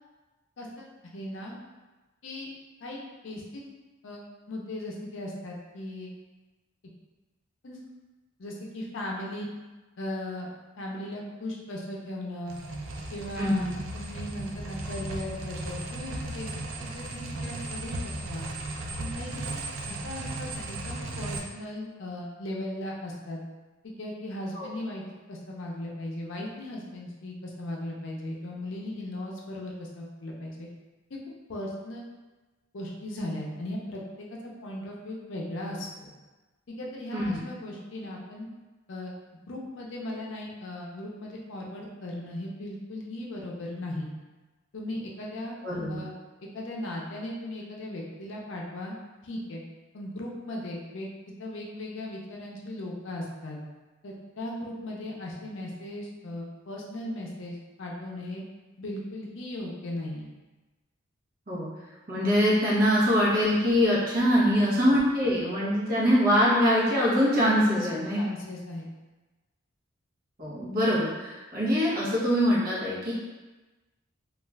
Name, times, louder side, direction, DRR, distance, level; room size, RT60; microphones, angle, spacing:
voice 1, 0.6-1.5 2.2-2.5 2.8-3.6 4.0-6.1 7.6-7.8 8.4-9.5 10.0-10.5 10.8-12.6 13.1-13.7 13.9-16.5 16.8-18.5 19.0-19.5 19.8-23.4 23.8-25.0 25.3-30.7 31.1-31.2 31.5-32.1 32.7-36.1 36.8-38.5 38.9-39.1 39.5-44.1 44.7-45.6 45.9-46.1 46.5-49.0 49.2-49.6 49.9-51.1 51.4-53.6 54.0-58.4 58.8-60.3 64.5-64.8 67.7-68.9, left 1 dB, 65° left, -2 dB, 0.5 m, -37 dB
sound 1, 12.5-21.4, right 2 dB, 80° right, 0.4 m, -36 dB
voice 2, 13.4-13.7 24.5-24.7 37.1-37.4 45.6-46.0 61.5-61.7 62.1-68.2 70.4-73.1, equal, 45° right, -7 dB, 0.8 m, -23 dB
2.4 x 2.3 x 3.1 m, 1.2 s
head